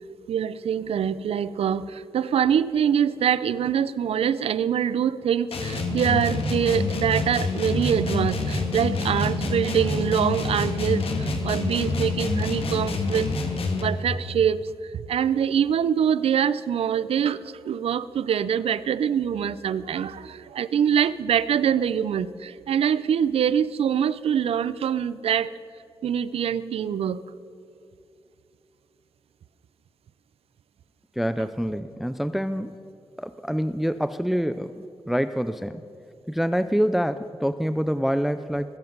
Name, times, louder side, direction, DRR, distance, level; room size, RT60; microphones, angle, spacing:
voice 1, 0.3-11.0 11.4-13.3 13.8-14.6 15.1-17.4 17.7-25.5 26.0-27.2, right 8 dB, 80° right, 17 dB, 0.4 m, -24 dB
sound 1, 5.5-14.0, left 3 dB, 70° left, 1.5 m, -27 dB
voice 2, 31.2-32.7 33.2-35.8 36.3-38.8, equal, ahead, 12 dB, 0.3 m, -26 dB
21.0 x 7.9 x 5.4 m, 2.6 s
cardioid pair, 95°, 10 cm